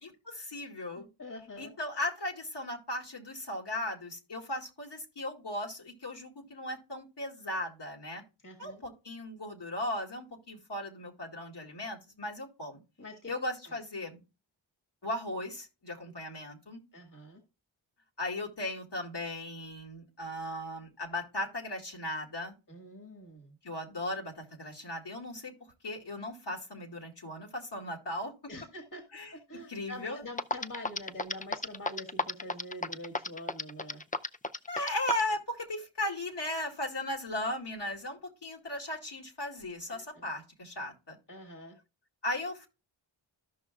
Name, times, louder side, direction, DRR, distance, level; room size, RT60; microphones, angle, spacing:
voice 1, 0.0-1.1 1.6-8.2 8.6-12.8 13.3-14.2 15.0-16.8 18.2-22.5 23.6-25.5 25.8-28.3 29.1-29.3 29.7-30.2 34.7-41.2 42.2-42.7, left 1 dB, 60° left, -1 dB, 2.3 m, -37 dB
voice 2, 1.0-1.7 8.4-8.8 13.0-13.3 13.7-13.8 16.9-17.4 22.7-23.6 28.5-29.0 29.3-34.0 39.9-40.3 41.3-41.8, left 1 dB, 40° left, 4 dB, 1.9 m, -45 dB
sound 1, 30.0-30.1 30.4-35.3, left 3 dB, 20° left, 0.5 m, -32 dB
14.0 x 5.6 x 2.4 m, 0.30 s
cardioid pair, 45°, 47 cm